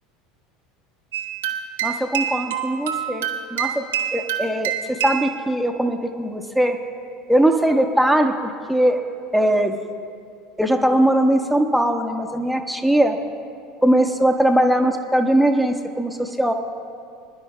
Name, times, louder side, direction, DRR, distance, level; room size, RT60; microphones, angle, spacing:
sound 1, 1.1-5.3, right 9 dB, 70° right, 0.9 m, -26 dB
voice 1, 1.8-3.9 4.1-6.8 7.3-9.0 9.3-9.8 10.6-13.2 13.8-16.5, right 1 dB, ahead, 4 dB, 0.9 m, -20 dB
25.5 x 11.0 x 2.2 m, 2.4 s
figure-of-eight pair, 70°, 0 cm